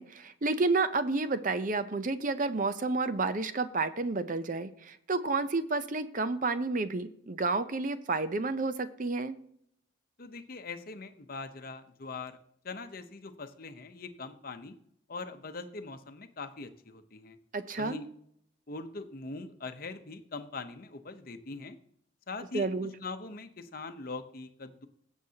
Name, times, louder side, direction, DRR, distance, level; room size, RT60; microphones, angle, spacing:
voice 1, 0.0-9.3 17.5-18.0 22.5-22.9, right 3 dB, 40° right, 11 dB, 0.6 m, -30 dB
voice 2, 10.2-12.4 12.6-14.7 15.1-17.4 17.7-18.1 18.7-21.8 22.3-24.9, left 3 dB, 45° left, 9 dB, 0.8 m, -42 dB
17.0 x 7.3 x 2.8 m, 0.69 s
head